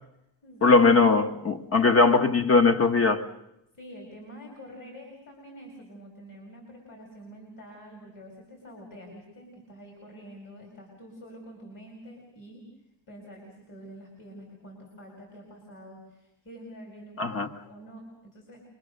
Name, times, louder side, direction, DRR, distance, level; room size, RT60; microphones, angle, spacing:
voice 1, 0.6-3.2 17.2-17.5, left 4 dB, 35° left, 1.2 m, -20 dB
voice 2, 3.7-12.7 13.1-18.6, equal, 50° left, 4.6 m, -47 dB
24.0 x 22.5 x 6.5 m
wide cardioid pair, 160°, 41 cm